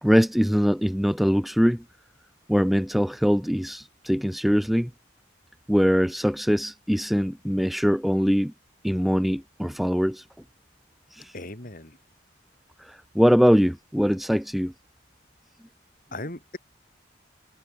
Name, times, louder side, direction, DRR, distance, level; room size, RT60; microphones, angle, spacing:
voice 1, 0.0-1.8 2.5-4.9 5.7-8.5 8.8-10.2 11.1-11.3 12.8-14.7, equal, ahead, 0.5 m, -22 dB
voice 2, 11.3-12.0 16.1-16.6, left 2 dB, 45° left, 4.1 m, -37 dB
head